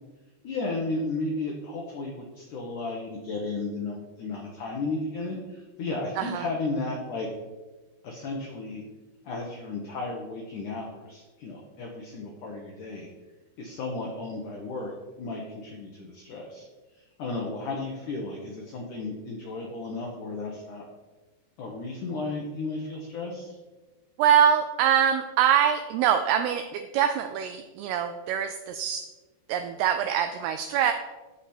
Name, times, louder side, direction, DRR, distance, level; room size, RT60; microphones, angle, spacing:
voice 1, 0.4-7.3 8.0-8.8 9.2-13.1 13.6-14.9 15.2-16.7 16.9-20.8 21.6-23.6, left 3 dB, 70° left, 0 dB, 1.9 m, -34 dB
voice 2, 24.2-29.0 29.5-30.9, right 9 dB, 85° right, 8 dB, 2.3 m, -24 dB
14.0 x 5.0 x 4.3 m, 1.2 s
omnidirectional pair, 5.0 m